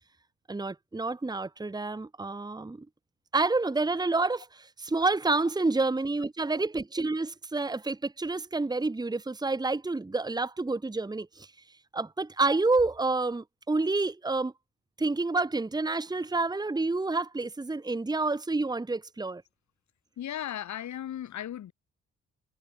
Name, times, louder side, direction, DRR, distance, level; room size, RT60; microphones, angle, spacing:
voice 1, 0.5-2.9 3.3-11.5 11.9-14.5 15.0-19.4, right 3 dB, 15° right, 1.4 m, -29 dB
voice 2, 20.2-21.7, left 11 dB, 70° left, 4.5 m, -36 dB
cardioid pair, 90°, 30 cm